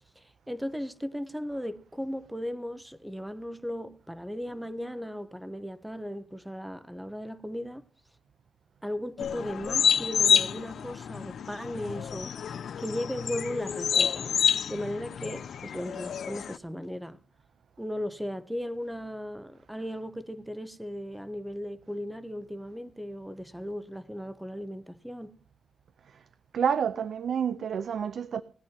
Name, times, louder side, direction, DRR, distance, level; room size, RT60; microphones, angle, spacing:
voice 1, 0.2-7.8 8.8-14.3 14.7-17.2 17.8-25.4, equal, 5° right, 0.8 m, -37 dB
sound 1, 9.2-16.6, left 7 dB, 60° left, 0.5 m, -28 dB
voice 2, 26.5-28.4, right 7 dB, 60° right, 0.6 m, -28 dB
19.5 x 11.0 x 2.8 m
wide cardioid pair, 165°, 0 cm